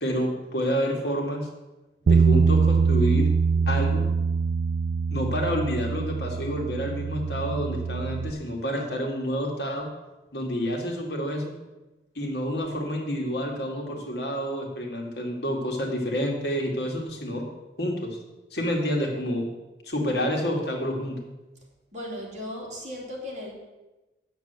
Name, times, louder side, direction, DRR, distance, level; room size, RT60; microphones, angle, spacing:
voice 1, 0.0-1.5 2.1-3.3 3.7-4.1 5.1-9.9 10.3-11.5 12.2-17.4 17.8-18.2 18.5-19.4 19.8-21.2, equal, 65° left, 1 dB, 2.1 m, -28 dB
Bass guitar, 2.1-8.3, right 5 dB, 70° right, 0.4 m, -23 dB
voice 2, 21.9-23.5, left 1 dB, 40° right, -3 dB, 3.0 m, -36 dB
9.0 x 6.9 x 8.1 m, 1.1 s
head